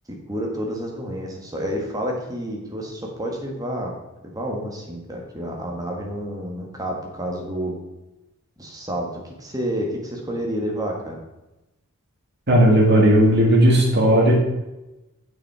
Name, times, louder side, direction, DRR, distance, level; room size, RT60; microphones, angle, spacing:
voice 1, 0.3-3.9 4.3-7.7 8.6-11.2, equal, 15° right, 0 dB, 1.5 m, -29 dB
voice 2, 12.5-14.3, equal, 50° right, -2 dB, 2.2 m, -15 dB
8.3 x 6.3 x 4.8 m, 0.99 s
head